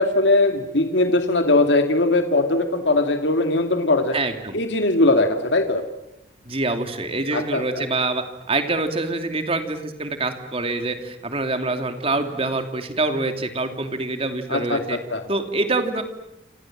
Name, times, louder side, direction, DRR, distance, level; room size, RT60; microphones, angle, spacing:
voice 1, 0.0-4.2 4.5-5.8 7.3-7.8 14.5-15.2, left 2 dB, 70° left, 6 dB, 2.4 m, -20 dB
voice 2, 4.1-4.6 6.4-15.0 15.3-16.0, right 2 dB, 30° right, 7 dB, 2.8 m, -25 dB
28.5 x 27.0 x 7.6 m, 0.85 s
head